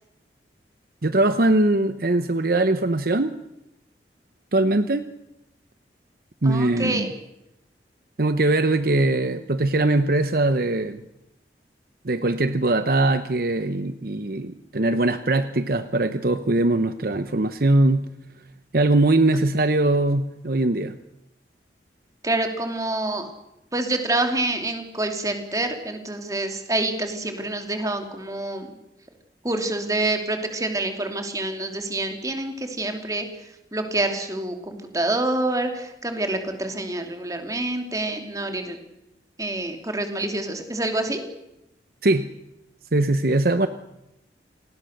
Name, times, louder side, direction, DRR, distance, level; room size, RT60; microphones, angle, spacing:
voice 1, 1.0-3.3 4.5-5.1 6.4-7.1 8.2-11.0 12.0-18.0 18.7-20.9 42.0-42.3 42.9-43.7, right 2 dB, 55° right, 11 dB, 0.9 m, -21 dB
voice 2, 6.4-7.1 22.2-23.3 23.7-28.7 29.4-33.3 33.7-38.8 39.4-41.2, right 2 dB, 20° right, 5 dB, 2.9 m, -27 dB
28.0 x 19.5 x 6.6 m, 0.87 s
head